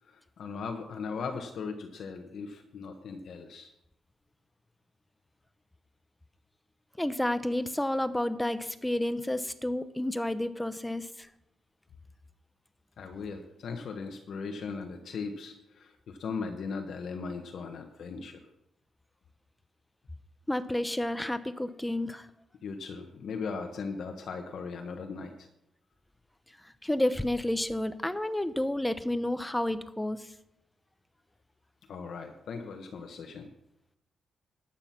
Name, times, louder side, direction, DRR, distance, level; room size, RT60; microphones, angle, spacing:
voice 1, 0.0-3.7 13.0-18.4 22.6-25.5 31.9-33.5, left 5 dB, 60° left, 4 dB, 1.2 m, -38 dB
voice 2, 7.0-11.3 20.5-22.3 26.8-30.3, left 1 dB, 5° left, 12 dB, 0.8 m, -30 dB
12.0 x 8.8 x 5.9 m, 0.86 s
cardioid pair, 115°, 0 cm